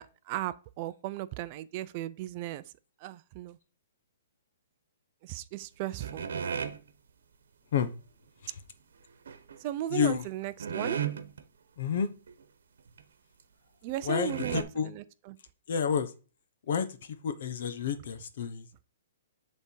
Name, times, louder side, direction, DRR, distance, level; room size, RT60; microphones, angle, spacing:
voice 1, 0.0-2.6 3.0-3.6 5.2-6.3 9.6-11.0 13.8-15.4, right 14 dB, 30° right, 0.4 m, -36 dB
sound 1, 6.0-6.8 9.3-9.6 10.2-10.3 10.6-11.4 11.9-12.0 12.3-12.4 13.0-13.1 13.9-14.0 14.3-14.6, right 7 dB, 75° right, 1.0 m, -34 dB
voice 2, 9.9-10.3 11.8-12.1 14.0-14.9 15.7-16.1 16.7-18.6, left 7 dB, 55° left, 1.0 m, -30 dB
9.8 x 3.5 x 4.6 m
hypercardioid pair, 165°, 0 cm